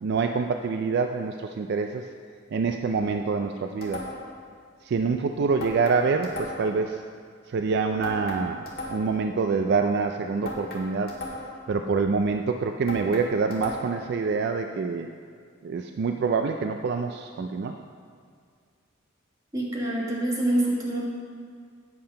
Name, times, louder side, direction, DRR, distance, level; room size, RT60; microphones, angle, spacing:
voice 1, 0.0-2.0 2.5-4.0 4.8-7.0 7.5-8.6 8.9-11.2 11.7-15.1 15.6-17.8, right 4 dB, 55° right, 6 dB, 0.3 m, -26 dB
sound 1, 3.8-4.4 5.6-6.8 8.0-9.2 10.4-11.7 12.9-14.1, left 2 dB, 50° left, 1.6 m, -37 dB
voice 2, 19.5-21.0, right 1 dB, 15° right, -5 dB, 1.5 m, -26 dB
8.7 x 5.7 x 5.4 m, 2.1 s
head